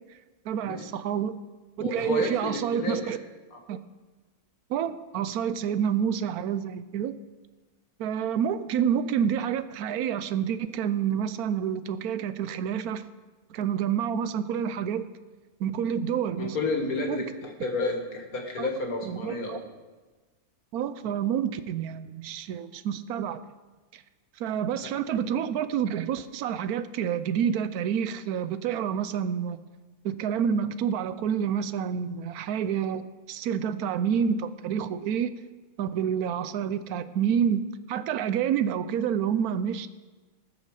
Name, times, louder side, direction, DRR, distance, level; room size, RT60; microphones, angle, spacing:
voice 1, 0.4-1.4 1.8-3.2 3.7-3.8 4.7-7.1 8.0-13.0 13.5-15.0 15.6-16.6 17.1-17.2 18.6-18.7 19.1-19.6 20.7-23.4 23.9-24.0 24.4-29.6 30.0-35.4 35.8-39.9, right 8 dB, 80° right, 13 dB, 1.2 m, -28 dB
voice 2, 1.8-3.2 3.5-3.6 16.4-19.6 25.1-25.2, left 3 dB, 75° left, 2 dB, 2.2 m, -31 dB
18.5 x 6.6 x 6.4 m, 1.3 s
omnidirectional pair, 1.6 m